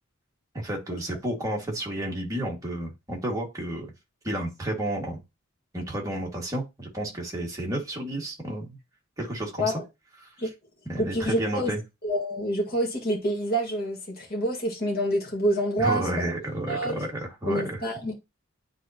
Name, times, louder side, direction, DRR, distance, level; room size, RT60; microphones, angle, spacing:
voice 1, 0.5-3.9 4.2-5.2 5.7-8.8 9.2-9.8 10.2-10.5 10.9-11.8 15.8-17.8, right 1 dB, 15° right, 2.0 m, -31 dB
voice 2, 11.0-11.7 12.0-16.0 16.7-16.9 17.5-18.2, equal, 45° left, 1.9 m, -27 dB
9.8 x 3.7 x 2.9 m
head